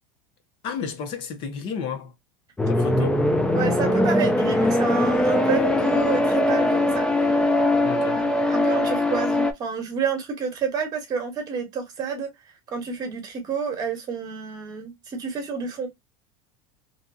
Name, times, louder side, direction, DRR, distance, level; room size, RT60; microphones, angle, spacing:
voice 1, 0.6-2.1 2.7-3.2 7.8-8.2, left 6 dB, 45° left, 0.7 m, -32 dB
sound 1, 2.6-9.5, left 1 dB, 5° left, 0.4 m, -21 dB
voice 2, 3.5-7.5 8.1-12.3 12.7-15.9, right 5 dB, 35° right, 1.1 m, -30 dB
2.7 x 2.2 x 2.6 m
supercardioid pair, 145°, 12 cm